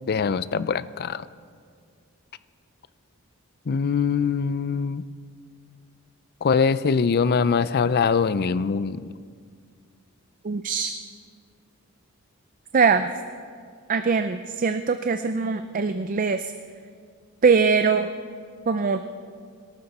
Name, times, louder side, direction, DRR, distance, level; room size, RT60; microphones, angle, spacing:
voice 1, 0.1-1.3 3.7-5.0 6.4-9.1, left 5 dB, 45° left, 16 dB, 0.4 m, -23 dB
voice 2, 10.4-11.0 12.7-13.1 13.9-16.4 17.4-18.1 18.7-19.0, right 5 dB, 40° right, 9 dB, 0.5 m, -22 dB
25.0 x 12.5 x 4.2 m, 2.1 s
head